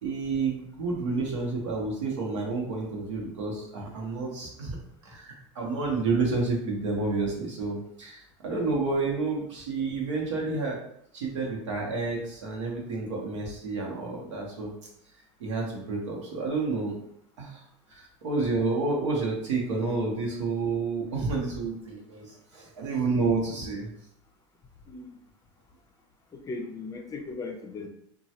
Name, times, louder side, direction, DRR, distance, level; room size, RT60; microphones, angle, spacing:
voice 1, 0.0-4.8 5.0-10.8 11.1-14.7 15.4-17.0 17.4-17.6 17.9-23.9, right 3 dB, 85° right, -2 dB, 1.0 m, -30 dB
voice 2, 24.8-25.2 26.3-27.9, left 3 dB, 25° left, 3 dB, 0.5 m, -37 dB
3.0 x 2.3 x 2.8 m, 0.71 s
hypercardioid pair, 95°, 15 cm